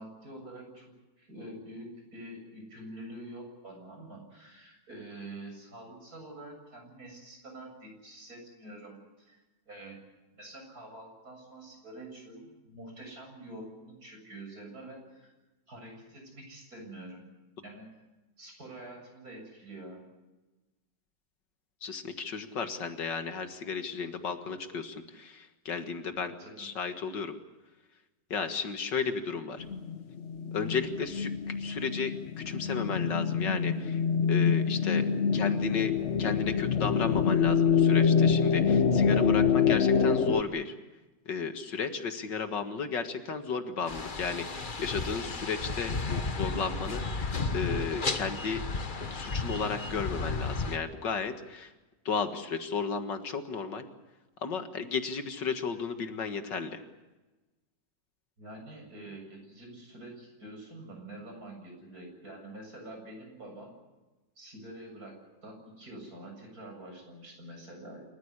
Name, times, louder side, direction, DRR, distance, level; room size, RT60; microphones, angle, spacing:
voice 1, 0.0-9.4 9.7-10.0 10.3-15.3 15.7-17.2 17.6-17.9 18.4-20.0 26.4-26.7 58.4-63.7 64.4-68.0, right 1 dB, 55° right, 2 dB, 8.0 m, -46 dB
voice 2, 21.8-26.3 26.6-27.3 28.3-29.6 30.5-34.0 34.3-35.0 35.3-35.9 36.2-40.7 41.3-48.6 49.1-51.7 52.1-53.9 54.4-56.8, left 5 dB, 80° left, 8 dB, 2.4 m, -34 dB
sound 1, 29.6-40.4, left 6 dB, 50° left, 1.1 m, -26 dB
sound 2, 43.9-50.8, left 3 dB, 30° left, 1.3 m, -33 dB
27.5 x 15.0 x 9.8 m, 1.1 s
omnidirectional pair, 1.9 m